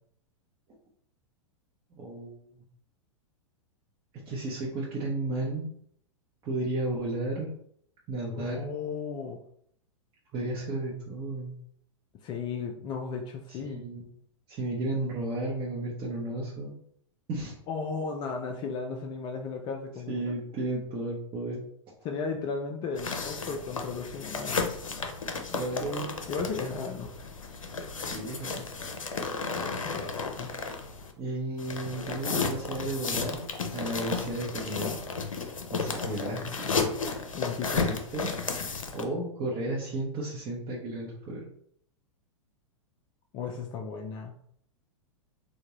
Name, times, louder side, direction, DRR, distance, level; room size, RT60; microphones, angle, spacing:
voice 1, 2.0-2.3 4.3-5.7 6.4-7.5 8.1-8.7 10.3-11.6 13.5-14.1 14.5-16.7 17.3-17.5 20.1-21.6 25.5-26.1 28.1-28.6 31.2-33.5 33.7-35.0 35.7-37.0 37.7-38.3 38.9-41.4, right 2 dB, 30° right, -5 dB, 0.8 m, -33 dB
voice 2, 8.3-9.4 12.2-13.8 17.7-20.2 22.0-24.8 26.3-27.1 29.8-30.5 37.3-37.9 43.3-44.3, left 5 dB, 25° left, 3 dB, 0.3 m, -35 dB
sound 1, 23.0-31.1 31.6-39.0, left 4 dB, 80° left, 0.5 m, -33 dB
3.5 x 2.2 x 3.0 m, 0.67 s
figure-of-eight pair, 100°, 17 cm